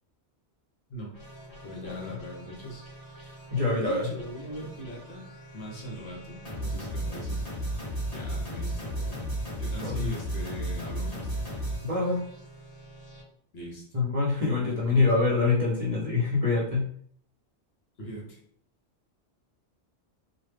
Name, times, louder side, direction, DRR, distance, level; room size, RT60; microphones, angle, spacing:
sound 1, 1.1-13.2, right 1 dB, 35° left, 1.2 m, -36 dB
voice 1, 1.6-5.3 5.5-7.8 8.1-9.2 9.6-11.5 13.5-14.1 14.6-15.1 18.0-18.4, equal, 60° left, -2 dB, 1.1 m, -41 dB
voice 2, 3.5-4.0 9.8-10.1 11.8-12.2 13.9-16.9, left 3 dB, 40° right, -5 dB, 0.7 m, -25 dB
3.1 x 2.1 x 3.3 m, 0.62 s
omnidirectional pair, 1.2 m